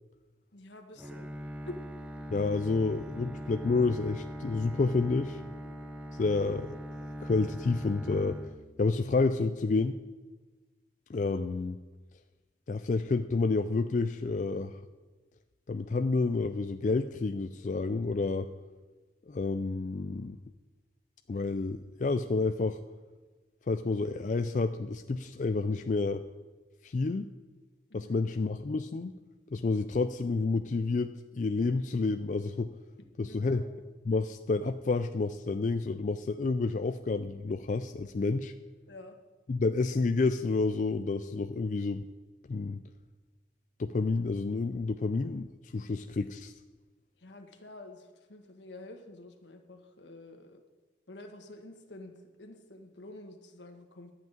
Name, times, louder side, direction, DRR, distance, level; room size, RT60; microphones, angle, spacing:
voice 1, 0.5-1.3 1.6-1.8 27.9-28.2 33.2-33.7 38.9-39.2 47.2-50.6 51.1-52.1 52.4-54.1, left 2 dB, 80° left, 5 dB, 1.5 m, -48 dB
Bowed string instrument, 1.0-9.2, equal, 5° right, 0.7 m, -42 dB
voice 2, 2.3-5.4 6.2-6.8 7.2-8.4 8.8-9.9 11.1-11.8 12.7-14.8 15.7-18.5 19.3-20.4 21.3-22.8 23.7-26.2 26.8-27.3 27.9-29.1 29.5-32.7 33.2-33.6 34.1-38.5 39.5-42.0 42.5-42.8 43.8-45.5 45.7-46.5, left 3 dB, 45° left, 8 dB, 0.4 m, -29 dB
12.0 x 5.9 x 8.9 m, 1.3 s
head